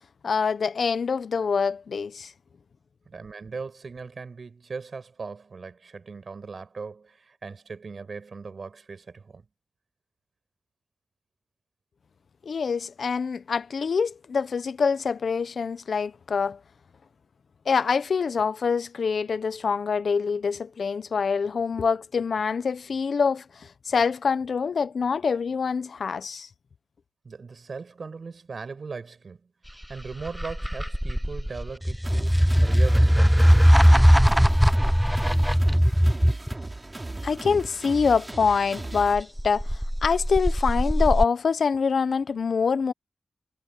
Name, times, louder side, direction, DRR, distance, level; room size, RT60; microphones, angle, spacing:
voice 1, 0.2-2.3 12.4-16.6 17.7-26.5 37.2-42.9, left 5 dB, 65° left, 0.9 m, -25 dB
voice 2, 3.1-9.4 27.2-29.4 29.9-33.8, right 4 dB, 55° right, 5.5 m, -39 dB
sound 1, 29.8-36.5 39.2-41.2, equal, ahead, 0.4 m, -19 dB
sound 2, 32.0-39.1, right 2 dB, 25° right, 6.8 m, -37 dB
cardioid pair, 65°, 0 cm